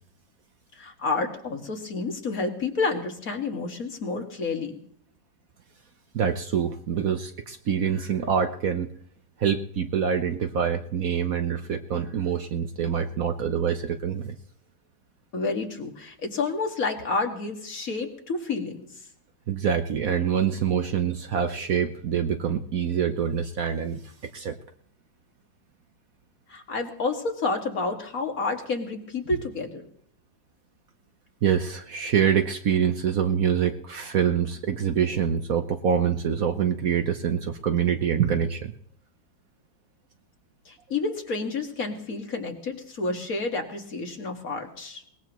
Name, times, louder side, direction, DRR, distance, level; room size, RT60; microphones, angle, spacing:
voice 1, 0.8-4.8 15.3-18.9 26.5-29.9 40.7-45.0, left 3 dB, 50° left, 3 dB, 2.3 m, -30 dB
voice 2, 6.1-8.9 9.4-14.3 19.5-24.6 31.4-38.7, right 8 dB, 55° right, 7 dB, 1.2 m, -25 dB
22.0 x 20.0 x 3.1 m, 0.66 s
omnidirectional pair, 2.0 m